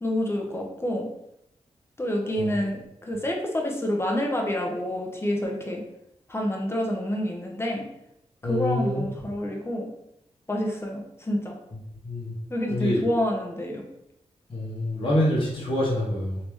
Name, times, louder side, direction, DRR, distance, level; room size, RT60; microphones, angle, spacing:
voice 1, 0.0-1.1 2.0-5.8 6.3-7.8 8.4-9.9 10.5-11.6 12.5-13.8, left 1 dB, 20° left, 0 dB, 0.8 m, -28 dB
voice 2, 8.4-9.0 12.0-12.3 12.7-13.0 14.5-16.4, left 1 dB, 45° left, -7 dB, 1.1 m, -26 dB
3.4 x 2.8 x 3.1 m, 0.81 s
cardioid pair, 80°, 12 cm